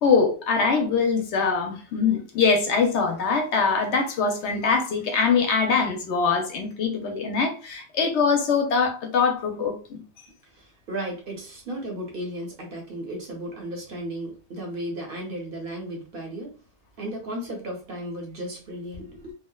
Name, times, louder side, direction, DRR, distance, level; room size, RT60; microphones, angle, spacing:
voice 1, 0.0-10.0, left 5 dB, 70° left, 0.9 m, -23 dB
voice 2, 10.5-16.5 17.0-19.3, right 1 dB, 55° right, 0.8 m, -34 dB
2.7 x 2.1 x 2.2 m
omnidirectional pair, 1.2 m